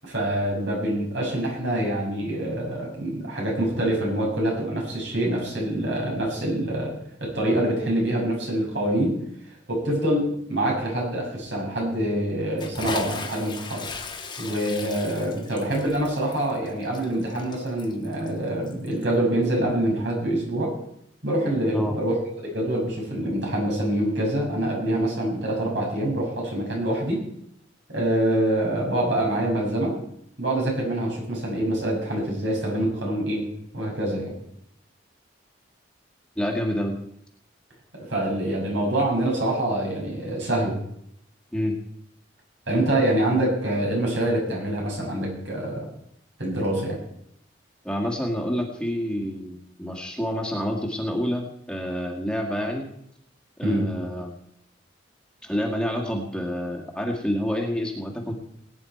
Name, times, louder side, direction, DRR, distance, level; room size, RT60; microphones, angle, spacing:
voice 1, 0.0-6.9 7.2-9.2 9.7-13.9 14.4-20.7 21.2-27.2 27.9-30.0 30.4-33.4 33.7-34.3 37.9-40.8 42.7-45.9 46.4-47.0 53.6-53.9, right 1 dB, 75° right, -2 dB, 6.4 m, -25 dB
Bathtub (filling or washing) / Splash splatter, 12.6-19.1, left 4 dB, 25° left, 1.3 m, -38 dB
voice 2, 36.4-37.0 41.5-41.8 47.8-52.9 53.6-54.3 55.4-58.3, equal, 5° left, 1 dB, 1.9 m, -28 dB
20.5 x 9.5 x 4.6 m, 0.73 s
head